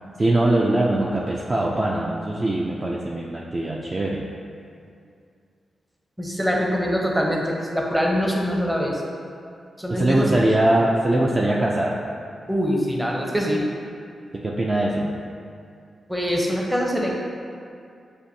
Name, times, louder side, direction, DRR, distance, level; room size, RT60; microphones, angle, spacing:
voice 1, 0.2-4.3 9.9-11.9 14.4-15.2, right 1 dB, 30° right, -3 dB, 0.4 m, -22 dB
voice 2, 6.2-9.0 9.8-10.3 12.5-13.7 16.1-17.2, equal, 5° right, -2 dB, 0.7 m, -23 dB
6.9 x 2.5 x 2.7 m, 2.4 s
cardioid pair, 85°, 0 cm